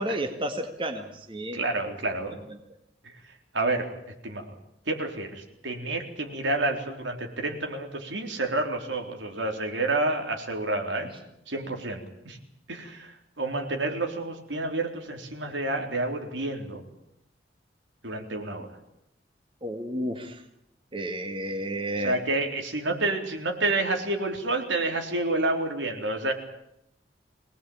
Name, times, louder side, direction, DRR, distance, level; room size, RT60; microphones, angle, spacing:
voice 1, 0.0-1.6 1.9-2.0 2.5-2.6 19.6-20.4 20.9-22.2, right 1 dB, 30° right, 4 dB, 2.1 m, -32 dB
voice 2, 1.5-2.4 3.5-3.9 4.2-4.4 4.9-11.1 11.5-12.4 12.7-16.8 18.0-18.7 22.0-26.3, right 2 dB, 85° right, 3 dB, 4.0 m, -29 dB
23.5 x 19.0 x 8.8 m, 0.78 s
head